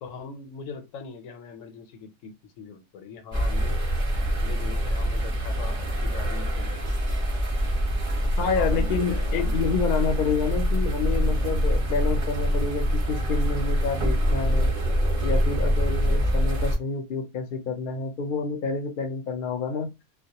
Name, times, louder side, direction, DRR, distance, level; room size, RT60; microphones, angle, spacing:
voice 1, 0.0-3.8 4.4-6.9 8.2-8.3 8.6-9.6, left 5 dB, 80° left, 0.9 m, -41 dB
sound 1, 3.3-16.8, equal, 30° right, 0.8 m, -25 dB
voice 2, 8.4-14.7 15.2-19.9, left 5 dB, 55° left, 0.6 m, -28 dB
2.2 x 2.1 x 2.8 m
omnidirectional pair, 1.3 m